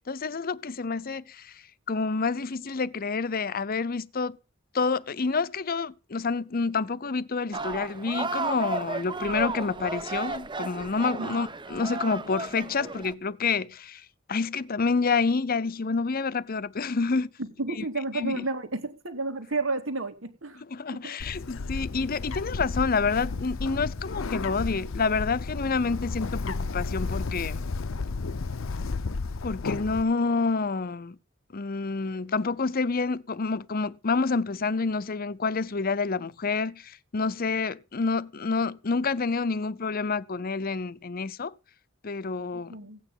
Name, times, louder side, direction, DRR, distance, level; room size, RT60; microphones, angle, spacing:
voice 1, 0.1-4.4 4.7-17.3 17.8-17.9 18.1-18.4 20.6-27.6 29.4-31.2 31.5-41.5 42.0-42.8, left 4 dB, 50° left, 0.7 m, -28 dB
sound 1, 7.5-13.1, right 3 dB, 25° right, 0.8 m, -34 dB
voice 2, 17.4-20.6 21.0-21.1 42.7-43.0, right 3 dB, 75° right, 2.4 m, -31 dB
Bird, 21.2-30.0, left 3 dB, 85° left, 0.7 m, -33 dB
16.5 x 9.1 x 5.5 m
head